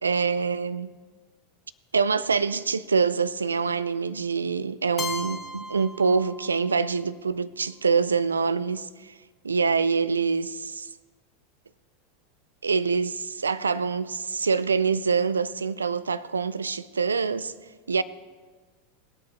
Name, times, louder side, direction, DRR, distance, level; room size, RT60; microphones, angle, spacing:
voice 1, 0.0-0.9 1.9-9.1 9.4-10.9 12.6-17.5 17.9-18.0, right 5 dB, 80° right, 0.4 m, -25 dB
Keyboard (musical), 5.0-6.9, left 4 dB, 25° left, 0.8 m, -36 dB
20.5 x 8.4 x 3.1 m
figure-of-eight pair, 85°, 0 cm